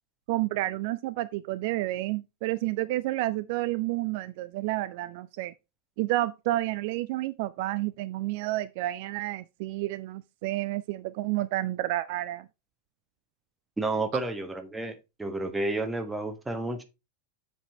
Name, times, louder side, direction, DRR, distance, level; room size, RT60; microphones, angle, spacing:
voice 1, 0.3-5.5 6.0-12.5 14.1-14.2, right 17 dB, 50° right, 0.3 m, -30 dB
voice 2, 13.8-16.8, right 2 dB, 10° right, 1.2 m, -31 dB
7.3 x 5.0 x 4.0 m
figure-of-eight pair, 90°, 0 cm